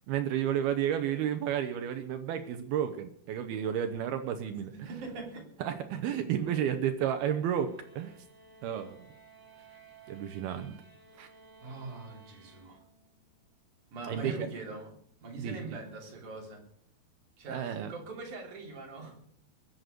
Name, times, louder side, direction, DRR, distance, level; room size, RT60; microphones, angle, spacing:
voice 1, 0.1-4.9 5.6-8.2 8.6-9.1 10.1-10.7 11.2-11.3 14.1-14.5 15.4-15.8 17.5-17.9, right 9 dB, 75° right, 8 dB, 2.7 m, -32 dB
voice 2, 4.7-5.5 11.6-12.8 13.9-14.9 15.2-16.6 17.4-19.2, right 3 dB, 50° right, 0 dB, 4.7 m, -42 dB
sound 1, 7.5-13.2, right 4 dB, 10° right, 0.9 m, -57 dB
21.5 x 7.9 x 6.7 m, 0.64 s
omnidirectional pair, 4.6 m